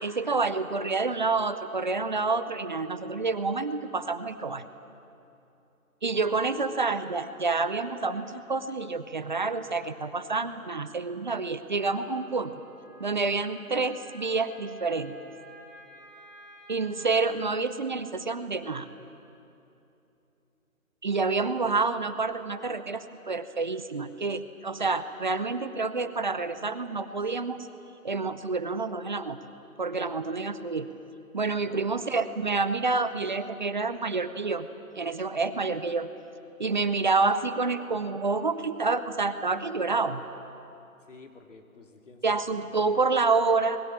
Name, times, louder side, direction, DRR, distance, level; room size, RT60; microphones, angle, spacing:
voice 1, 0.0-4.6 6.0-12.6 13.0-15.1 16.7-18.9 21.0-27.6 28.0-29.4 29.8-30.9 31.3-34.7 35.0-36.1 36.6-40.2 42.2-43.9, right 4 dB, 35° right, 11 dB, 0.7 m, -28 dB
Wind instrument woodwind instrument, 11.7-17.4, equal, 15° left, 7.9 m, -52 dB
voice 2, 41.1-42.4 42.8-43.1, left 4 dB, 55° left, 4 dB, 2.8 m, -51 dB
24.0 x 21.0 x 7.5 m, 2.8 s
figure-of-eight pair, 160°, 43 cm